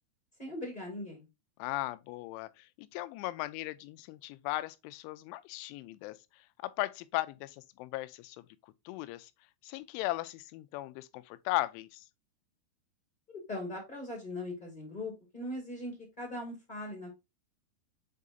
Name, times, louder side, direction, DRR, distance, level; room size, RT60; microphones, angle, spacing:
voice 1, 0.4-1.2 13.3-17.1, left 1 dB, 20° left, 1.2 m, -40 dB
voice 2, 1.6-9.3 9.6-12.1, left 17 dB, 90° left, 3.0 m, -37 dB
7.5 x 4.8 x 2.6 m
omnidirectional pair, 5.4 m